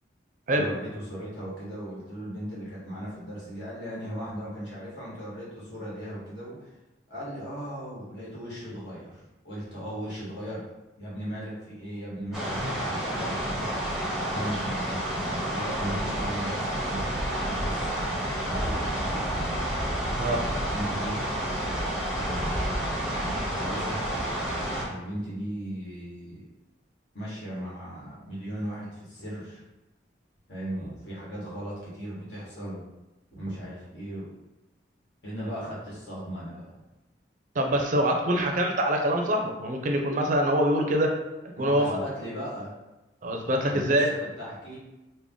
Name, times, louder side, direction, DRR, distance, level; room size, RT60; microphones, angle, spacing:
voice 1, 0.5-6.6 7.1-10.6 11.0-13.8 14.3-17.0 17.4-17.9 18.4-19.4 20.6-21.3 22.1-23.0 23.3-24.1 24.9-26.4 27.1-29.6 30.5-32.8 33.3-34.3 35.2-36.8 41.5-42.7 43.7-44.8, equal, 70° left, -7 dB, 1.5 m, -37 dB
river rapids, 12.3-24.8, right 1 dB, ahead, 0.6 m, -29 dB
voice 2, 37.6-41.1 41.6-42.0 43.2-44.1, right 1 dB, 45° right, 3 dB, 0.4 m, -24 dB
3.5 x 2.1 x 3.6 m, 1.0 s
head